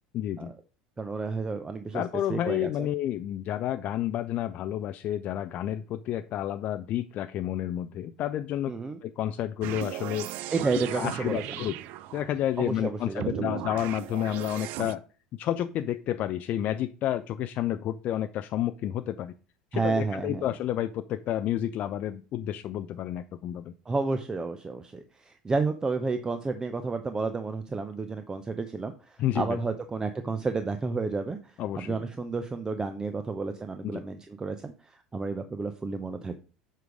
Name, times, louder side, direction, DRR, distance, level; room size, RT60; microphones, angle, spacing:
voice 1, 0.1-0.5 1.9-8.7 9.0-10.3 10.9-11.8 12.1-15.0 15.4-19.3 19.7-23.7 29.2-29.6 31.6-31.9 33.8-34.0, left 12 dB, 45° left, 9 dB, 0.5 m, -30 dB
voice 2, 1.0-2.0 2.3-2.9 8.7-9.0 10.5-11.4 12.6-13.6 19.7-20.5 23.9-31.4 31.8-34.7 35.1-36.4, right 4 dB, 20° right, 8 dB, 0.8 m, -31 dB
sound 1, 9.6-12.5 13.2-14.9, right 14 dB, 55° right, 0.5 m, -36 dB
7.8 x 5.2 x 4.9 m, 0.36 s
figure-of-eight pair, 70°, 3 cm